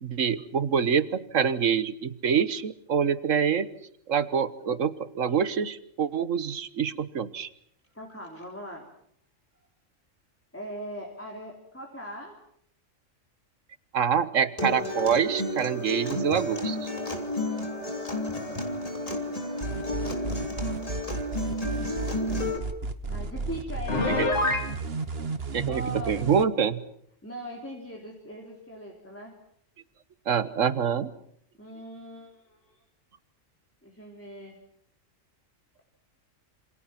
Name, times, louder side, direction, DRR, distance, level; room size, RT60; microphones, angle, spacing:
voice 1, 0.0-3.7 4.1-7.5 13.9-16.9 24.2-24.3 25.5-26.8 30.3-31.1, right 7 dB, 70° right, 14 dB, 1.6 m, -26 dB
voice 2, 7.9-8.9 10.5-12.3 19.8-20.5 21.6-21.8 23.1-24.3 25.7-26.2 27.2-29.3 31.6-32.8 33.8-34.6, equal, 10° left, 0 dB, 3.5 m, -40 dB
Acoustic guitar, 14.6-22.6, left 1 dB, 25° left, 3.4 m, -31 dB
sound 1, 19.6-26.4, right 4 dB, 50° right, 1.6 m, -33 dB
Piano, 23.9-24.7, left 2 dB, 60° left, 2.5 m, -25 dB
27.5 x 27.5 x 6.0 m, 0.67 s
omnidirectional pair, 1.4 m